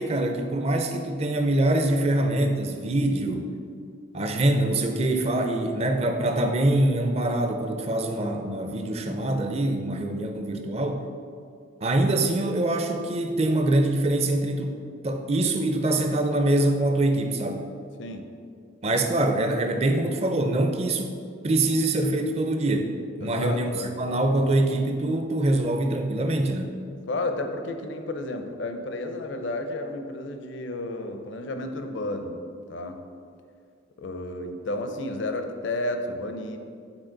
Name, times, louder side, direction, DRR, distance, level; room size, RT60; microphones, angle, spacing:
voice 1, 0.0-3.5 4.1-11.0 11.8-14.8 15.0-17.7 18.8-21.2 21.4-26.7, right 1 dB, 30° right, 5 dB, 0.5 m, -24 dB
voice 2, 18.0-18.3 23.2-24.0 27.1-32.4 32.7-33.0 34.0-36.6, left 2 dB, 65° left, 6 dB, 0.6 m, -32 dB
9.0 x 4.0 x 3.9 m, 2.3 s
head